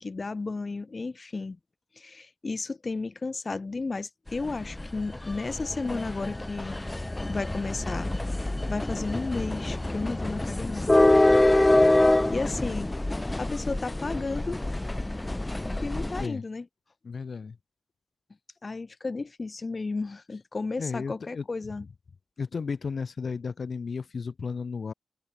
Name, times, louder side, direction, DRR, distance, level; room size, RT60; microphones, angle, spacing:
voice 1, 0.0-1.6 2.0-8.1 8.7-11.0 12.3-12.9 13.4-14.6 15.8-16.7 18.6-21.8, left 3 dB, 35° left, 0.8 m, -33 dB
sound 1, 4.3-16.3, left 1 dB, 15° left, 0.3 m, -25 dB
voice 2, 17.0-17.6 20.8-21.5 22.4-24.9, left 5 dB, 55° left, 1.2 m, -34 dB
wide cardioid pair, 160°, 0 cm